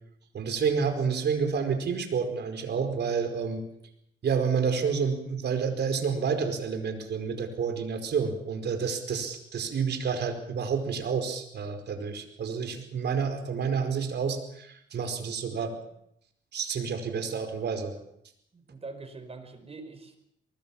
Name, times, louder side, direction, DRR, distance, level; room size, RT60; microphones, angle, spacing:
voice 1, 0.3-3.6 4.2-15.7 16.5-17.9, right 6 dB, 60° right, 6 dB, 4.9 m, -29 dB
voice 2, 18.5-20.2, right 3 dB, 30° right, 9 dB, 5.1 m, -43 dB
24.0 x 20.0 x 7.3 m, 0.75 s
cardioid pair, 90°, 20 cm